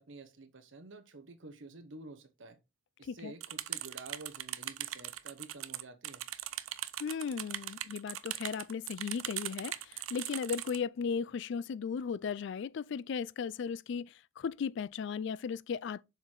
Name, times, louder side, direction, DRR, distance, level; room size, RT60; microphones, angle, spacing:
voice 1, 0.0-2.6 3.0-6.2, right 2 dB, 65° right, 1.0 m, -50 dB
voice 2, 3.0-3.3 7.0-16.0, left 6 dB, 60° left, 0.3 m, -36 dB
sound 1, 3.4-10.8, right 13 dB, 90° right, 0.5 m, -40 dB
7.1 x 4.5 x 3.9 m
head